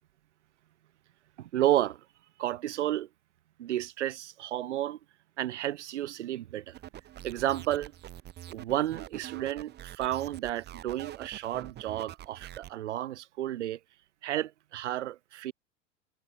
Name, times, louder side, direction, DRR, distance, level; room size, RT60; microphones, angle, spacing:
voice 1, 1.4-2.0 2.4-3.1 3.6-5.0 5.4-6.8 7.2-7.9 8.5-13.8 14.2-15.5, right 13 dB, 65° right, 0.5 m, -31 dB
sound 1, 6.7-12.7, right 12 dB, 25° right, 1.7 m, -45 dB
figure-of-eight pair, 90°, 38 cm